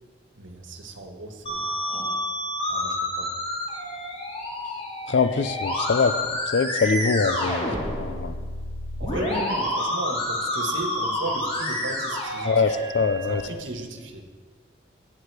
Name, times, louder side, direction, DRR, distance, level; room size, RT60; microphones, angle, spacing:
voice 1, 0.3-2.4 2.7-3.3 9.0-12.8 13.3-14.3, right 2 dB, 90° right, 4 dB, 1.3 m, -36 dB
Musical instrument, 1.5-13.4, left 1 dB, 30° left, 2.1 m, -29 dB
voice 2, 5.1-6.2 6.5-8.3 12.5-13.4, left 5 dB, 65° left, 12 dB, 0.4 m, -23 dB
8.4 x 8.0 x 8.2 m, 1.5 s
head